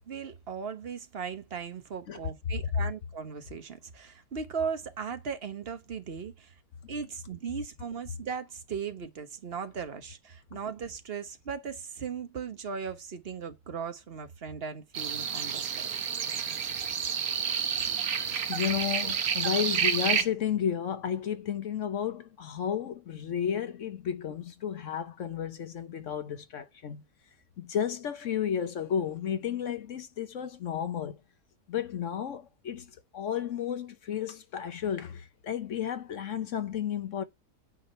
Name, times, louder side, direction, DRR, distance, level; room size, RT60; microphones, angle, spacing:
voice 1, 0.1-6.5 6.9-15.9, right 6 dB, 45° right, 1.2 m, -38 dB
sound 1, 14.9-20.2, right 7 dB, 70° right, 1.5 m, -29 dB
voice 2, 18.5-27.0 27.6-31.2 31.7-37.2, left 9 dB, 60° left, 1.1 m, -32 dB
9.0 x 4.9 x 5.5 m
omnidirectional pair, 1.6 m